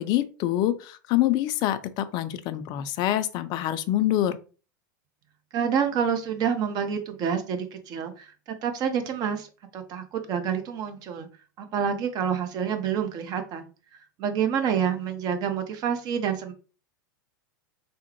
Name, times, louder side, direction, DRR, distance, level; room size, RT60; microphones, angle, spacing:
voice 1, 0.0-4.4, left 13 dB, 40° left, 12 dB, 0.4 m, -25 dB
voice 2, 5.5-8.3 8.6-9.5 9.7-11.3 11.6-13.7 14.2-16.5, right 7 dB, 40° right, 7 dB, 0.7 m, -27 dB
3.5 x 2.0 x 3.0 m, 0.36 s
hypercardioid pair, 95°, 11 cm